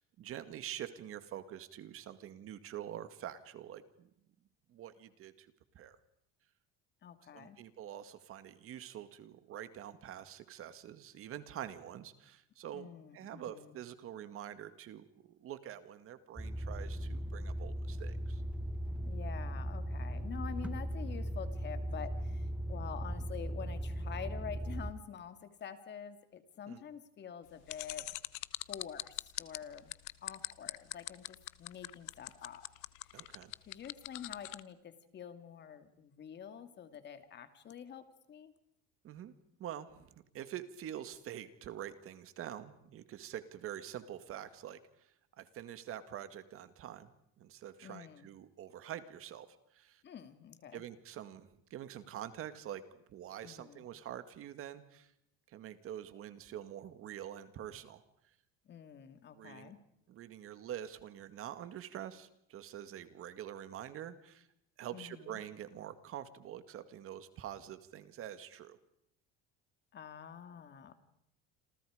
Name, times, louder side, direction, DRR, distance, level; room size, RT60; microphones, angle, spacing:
voice 1, 0.0-4.1 4.7-5.5 5.7-6.0 7.3-18.4 26.7-26.8 33.1-33.5 39.0-39.3 39.6-47.1 47.4-50.0 50.7-55.1 55.5-58.3 59.3-59.7 60.1-64.5 64.8-68.8, right 11 dB, 50° right, 12 dB, 2.1 m, -46 dB
voice 2, 7.0-7.6 12.7-13.8 19.0-28.1 28.7-29.9 30.2-32.6 33.0-33.3 33.7-38.5 47.8-48.3 50.0-50.8 53.4-53.9 58.7-59.8 64.9-65.4 69.9-70.9, left 8 dB, 35° left, 10 dB, 2.5 m, -47 dB
sound 1, 16.4-24.9, right 1 dB, 5° right, 1.0 m, -38 dB
sound 2, 27.7-34.6, left 24 dB, 85° left, 1.1 m, -41 dB
28.5 x 27.5 x 5.1 m, 0.74 s
cardioid pair, 145°, 29 cm